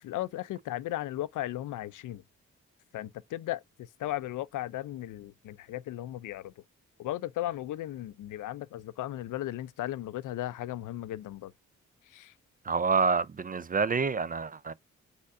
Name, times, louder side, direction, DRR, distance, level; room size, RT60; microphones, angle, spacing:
voice 1, 0.0-2.2 2.9-6.6 7.0-11.5 12.1-12.3, left 14 dB, 70° left, 0.4 m, -36 dB
voice 2, 12.7-14.7, right 5 dB, 25° right, 0.4 m, -27 dB
4.9 x 4.2 x 2.4 m
supercardioid pair, 45°, 32 cm